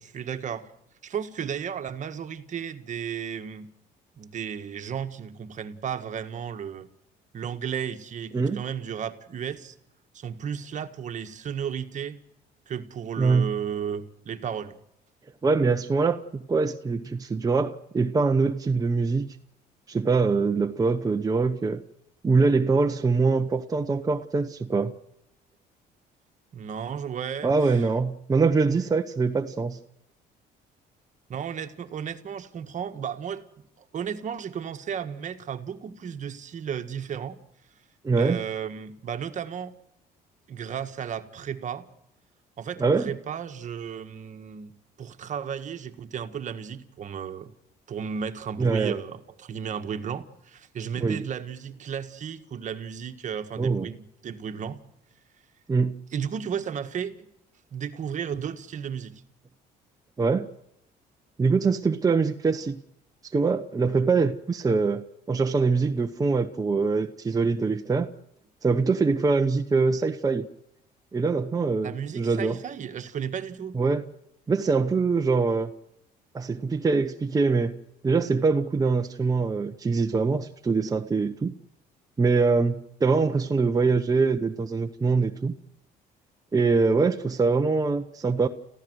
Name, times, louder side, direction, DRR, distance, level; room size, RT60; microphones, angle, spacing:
voice 1, 0.0-0.7 1.0-3.7 4.2-6.9 7.3-9.7 10.1-12.2 12.7-14.8 26.5-27.9 31.3-33.4 33.8-37.4 38.2-39.7 40.5-41.9 42.6-47.5 47.9-54.8 56.1-57.1 57.7-59.2 71.8-73.7, right 7 dB, 45° right, 8 dB, 1.6 m, -34 dB
voice 2, 13.2-13.5 15.4-19.3 19.9-21.8 22.2-24.9 27.4-29.8 38.0-38.4 42.8-43.1 48.6-49.0 51.0-51.2 53.6-53.9 55.7-55.9 60.2-60.5 61.4-62.8 63.3-68.1 68.6-70.5 71.1-72.6 73.7-74.1 74.5-75.7 76.3-77.7 78.0-81.5 82.2-85.5 86.5-88.5, right 4 dB, 20° right, 5 dB, 1.0 m, -23 dB
29.5 x 15.0 x 8.0 m, 0.81 s
cardioid pair, 110°, 17 cm